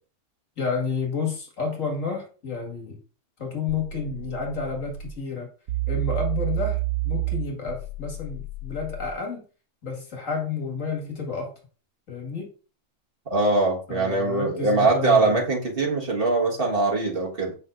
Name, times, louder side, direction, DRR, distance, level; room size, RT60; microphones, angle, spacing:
voice 1, 0.6-3.0 3.4-5.5 5.9-6.8 7.0-9.4 9.8-11.5 12.1-12.5 13.9-15.4, left 5 dB, 85° left, 1 dB, 2.3 m, -30 dB
sound 1, 3.7-5.1 5.7-9.1, right 11 dB, 80° right, 1.0 m, -30 dB
voice 2, 13.3-17.5, right 3 dB, 45° right, -1 dB, 1.7 m, -22 dB
7.3 x 5.6 x 2.5 m, 0.37 s
omnidirectional pair, 1.3 m